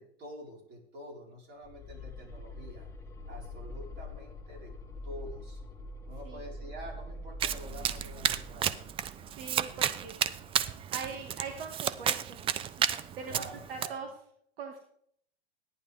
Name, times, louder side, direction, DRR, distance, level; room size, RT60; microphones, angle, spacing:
voice 1, 0.0-2.9 3.3-4.7 5.0-5.6 6.0-8.9 9.7-9.8 10.4-10.5 13.2-14.0, equal, 35° right, -1 dB, 4.9 m, -47 dB
sound 1, 1.6-10.5, left 1 dB, 10° left, 1.4 m, -45 dB
Domestic sounds home sounds, 7.4-13.9, right 9 dB, 15° right, 0.4 m, -32 dB
voice 2, 9.3-10.1 10.9-12.9 13.2-13.4 13.7-14.1 14.6-14.8, right 5 dB, 65° right, 3 dB, 2.0 m, -41 dB
17.0 x 10.5 x 3.6 m, 0.66 s
hypercardioid pair, 105°, 31 cm